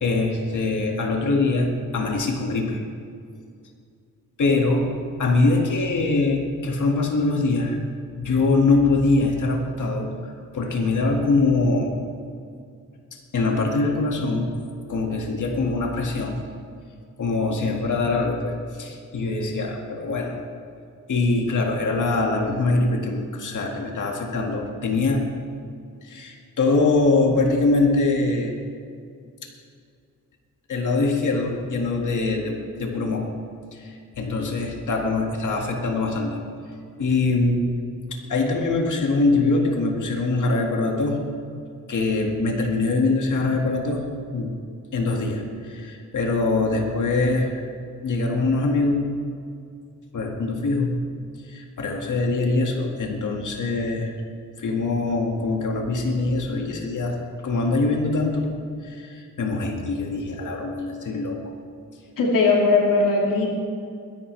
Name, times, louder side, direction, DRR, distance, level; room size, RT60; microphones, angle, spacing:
voice 1, 0.0-2.8 4.4-4.9 5.2-7.8 8.2-11.9 13.1-14.5 14.9-16.4 17.2-20.4 21.1-25.2 26.0-28.5 29.4-29.5 30.7-33.3 33.7-36.4 37.0-37.6 38.1-41.2 41.9-44.1 44.3-44.5 44.9-47.6 48.0-49.1 50.1-51.0 51.4-54.2 54.6-57.2 57.4-58.5 58.8-61.4, left 3 dB, 70° left, 1 dB, 2.0 m, -23 dB
voice 2, 62.2-63.5, left 3 dB, 85° left, -2 dB, 2.3 m, -19 dB
21.5 x 11.0 x 3.3 m, 2.3 s
cardioid pair, 65°, 32 cm